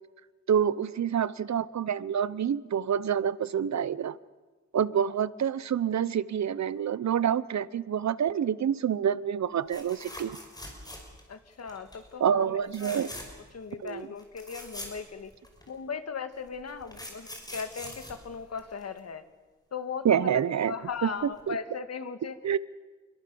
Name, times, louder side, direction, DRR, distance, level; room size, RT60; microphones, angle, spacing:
voice 1, 0.5-4.2 4.7-10.4 12.2-13.1 13.8-14.1 20.0-20.7 21.0-21.6 22.4-22.6, right 8 dB, 70° right, 18 dB, 0.9 m, -27 dB
sound 1, 9.7-11.3 11.7-12.0 12.7-13.5 13.9-14.0 14.2-15.7 16.5-19.0 20.9-21.1 21.4-21.5, left 1 dB, 15° left, 5.7 m, -43 dB
voice 2, 11.3-13.1 13.5-15.3 15.7-19.2 19.7-22.4, left 5 dB, 60° left, 9 dB, 1.9 m, -38 dB
27.5 x 23.0 x 7.0 m, 1.3 s
wide cardioid pair, 105°, 29 cm